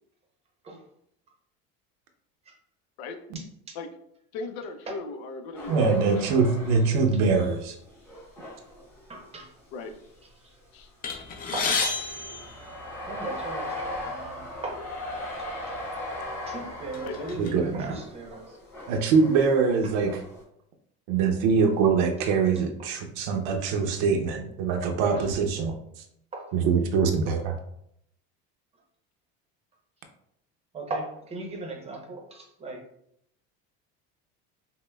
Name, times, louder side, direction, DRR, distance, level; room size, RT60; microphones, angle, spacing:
voice 1, 4.3-6.2 9.7-9.9 10.7-10.9 17.1-17.3, left 3 dB, 90° left, 6 dB, 0.6 m, -37 dB
sound 1, 5.5-9.6 10.2-10.3 11.1-20.4, left 1 dB, 10° left, 0.9 m, -39 dB
voice 2, 5.7-7.7 17.4-18.0 18.9-20.2 21.1-25.8 26.5-27.6, right 5 dB, 80° right, 4 dB, 0.6 m, -23 dB
voice 3, 9.1-9.5 11.5-12.0 13.1-14.9 15.4-16.1 16.4-18.6 19.8-19.9 26.3-26.5 27.3-27.4 30.7-32.8, right 2 dB, 20° right, 1 dB, 0.7 m, -38 dB
sound 2, 11.0-13.4 14.2-14.3 14.7-14.8 15.7-15.8 16.3-17.5, left 4 dB, 30° left, 0.5 m, -31 dB
5.4 x 2.1 x 2.2 m, 0.72 s
cardioid pair, 150°, 30 cm